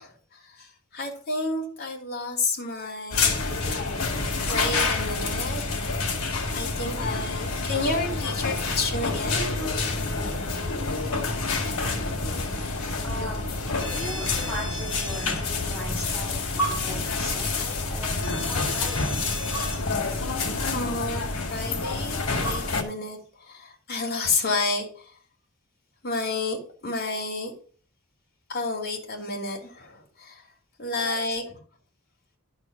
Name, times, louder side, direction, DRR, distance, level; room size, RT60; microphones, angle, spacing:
voice 1, 0.0-3.4 4.0-6.0 6.5-9.5 13.8-13.9 20.7-25.1 26.0-27.5 28.5-30.4 30.8-31.6, left 3 dB, 50° left, 2.9 m, -31 dB
sound 1, 3.1-22.8, left 3 dB, 80° left, 2.2 m, -28 dB
voice 2, 13.0-13.5 13.9-19.1 30.9-31.2, left 1 dB, 10° left, 6.0 m, -39 dB
12.0 x 4.4 x 6.0 m
head